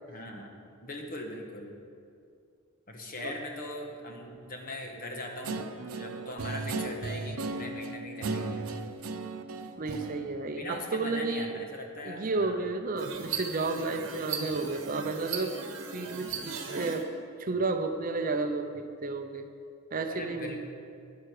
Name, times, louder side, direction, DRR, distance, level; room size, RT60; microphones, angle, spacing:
voice 1, 0.1-0.5 0.8-1.7 2.9-8.7 10.5-12.7 20.1-20.6, left 1 dB, 40° left, 2 dB, 1.4 m, -40 dB
Guitar, 5.4-11.3, right 3 dB, 75° right, 0.7 m, -36 dB
voice 2, 9.8-11.6 12.0-15.5 15.9-17.1 17.4-19.5 19.9-20.6, right 3 dB, 40° right, 6 dB, 0.6 m, -32 dB
sound 1, 13.0-17.0, right 5 dB, 60° right, 1.3 m, -37 dB
12.5 x 10.5 x 4.9 m, 2.4 s
head